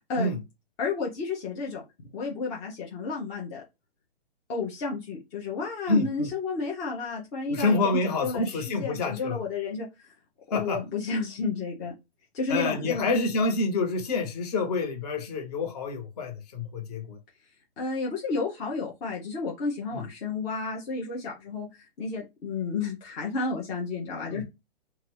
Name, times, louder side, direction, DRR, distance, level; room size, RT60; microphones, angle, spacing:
voice 1, 0.8-3.6 4.5-10.1 10.5-11.9 12.3-13.1 17.8-24.4, left 4 dB, 10° left, 0.4 m, -32 dB
voice 2, 5.9-6.3 7.5-9.4 10.5-10.8 12.5-17.2 24.3-24.4, left 3 dB, 40° left, 1.1 m, -27 dB
2.8 x 2.2 x 3.1 m
figure-of-eight pair, 125°, 31 cm